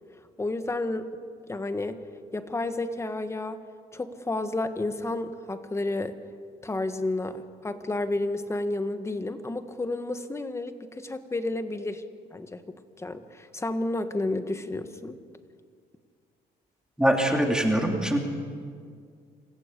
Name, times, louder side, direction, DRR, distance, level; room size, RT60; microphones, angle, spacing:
voice 1, 0.4-1.1 1.5-2.0 2.3-3.6 3.9-6.1 6.6-12.0 12.3-15.2, left 2 dB, 15° left, 9 dB, 1.5 m, -31 dB
voice 2, 17.0-18.2, right 1 dB, 5° right, 1 dB, 3.1 m, -23 dB
26.5 x 15.0 x 8.4 m, 2.1 s
cardioid pair, 110°, 17 cm